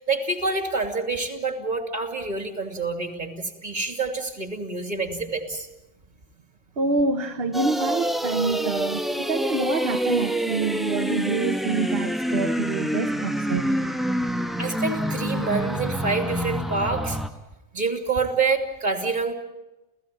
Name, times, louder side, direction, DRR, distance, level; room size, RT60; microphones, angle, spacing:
voice 1, 0.0-5.7 14.6-17.2 17.7-19.3, right 4 dB, 40° right, 6 dB, 2.9 m, -27 dB
voice 2, 6.8-13.7, right 4 dB, 55° right, 6 dB, 1.3 m, -27 dB
sound 1, 7.5-17.3, equal, ahead, 1.1 m, -26 dB
30.0 x 15.5 x 9.1 m, 1.0 s
omnidirectional pair, 1.2 m